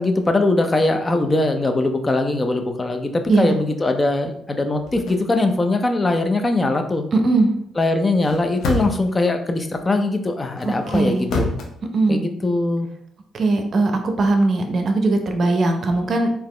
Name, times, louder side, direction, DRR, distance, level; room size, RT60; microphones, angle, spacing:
voice 1, 0.0-7.0 7.8-11.5 12.1-12.9, left 2 dB, 25° left, 6 dB, 0.5 m, -21 dB
voice 2, 3.3-3.6 7.1-7.5 10.6-11.2 11.9-12.2 13.3-16.3, right 2 dB, 50° right, 5 dB, 0.7 m, -19 dB
sound 1, 4.8-5.2 8.1-9.2 10.6-11.7, left 2 dB, 75° left, 0.8 m, -27 dB
4.0 x 2.8 x 3.2 m, 0.71 s
cardioid pair, 90°, 0 cm